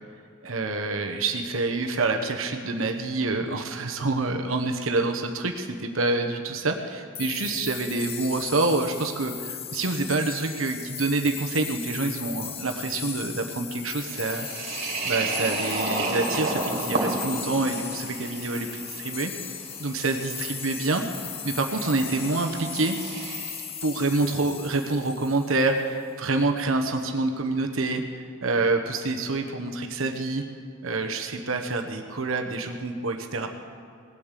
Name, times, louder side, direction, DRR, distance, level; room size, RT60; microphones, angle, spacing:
voice 1, 0.4-14.5 15.0-19.3 19.8-21.0 21.4-23.0 23.8-30.4 30.8-33.5, right 3 dB, 75° right, 4 dB, 1.1 m, -27 dB
sound 1, 7.1-25.8, left 8 dB, 30° left, 0.7 m, -37 dB
sound 2, 14.0-23.8, right 2 dB, 50° right, 2.7 m, -33 dB
19.0 x 8.5 x 7.5 m, 2.5 s
head